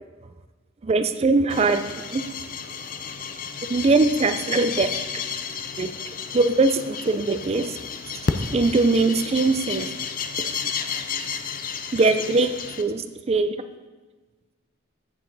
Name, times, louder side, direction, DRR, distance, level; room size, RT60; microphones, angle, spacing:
voice 1, 0.8-2.2 3.7-5.0 5.8-5.9 6.3-7.8 8.5-9.9 10.4-10.5 11.9-13.6, right 3 dB, 30° right, 10 dB, 0.4 m, -21 dB
sound 1, 1.5-12.8, left 6 dB, 45° left, 0.5 m, -32 dB
8.6 x 7.3 x 4.0 m, 1.3 s
head